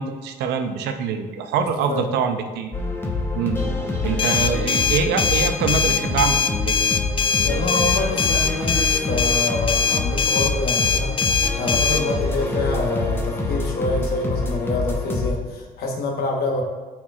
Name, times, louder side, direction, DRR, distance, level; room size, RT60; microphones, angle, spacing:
voice 1, 0.0-2.7 3.4-3.6 4.0-6.4 6.6-6.8, right 6 dB, 80° right, 7 dB, 0.7 m, -24 dB
voice 2, 1.6-2.1 7.4-16.6, left 2 dB, 70° left, 1 dB, 1.2 m, -27 dB
sound 1, 2.7-15.3, left 3 dB, 15° left, 0.9 m, -26 dB
sound 2, 4.2-12.0, left 5 dB, 30° left, 0.5 m, -22 dB
8.5 x 4.6 x 2.4 m, 1.4 s
cardioid pair, 110°, 17 cm